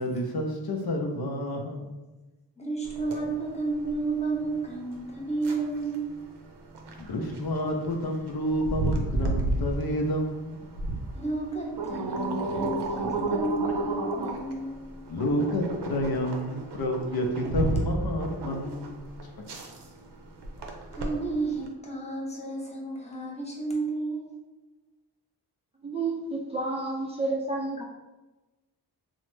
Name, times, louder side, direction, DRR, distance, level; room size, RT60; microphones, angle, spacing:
voice 1, 0.0-2.0 7.0-10.8 15.1-19.1, left 1 dB, 60° left, 2 dB, 0.6 m, -29 dB
voice 2, 2.6-6.1 11.1-14.7 20.9-24.3, right 3 dB, 15° left, -3 dB, 0.8 m, -31 dB
sound 1, 2.8-21.7, right 2 dB, 70° right, 0.6 m, -33 dB
voice 3, 25.8-27.8, right 3 dB, 15° right, -3 dB, 0.3 m, -30 dB
3.0 x 2.0 x 3.1 m, 1.1 s
cardioid pair, 50°, 42 cm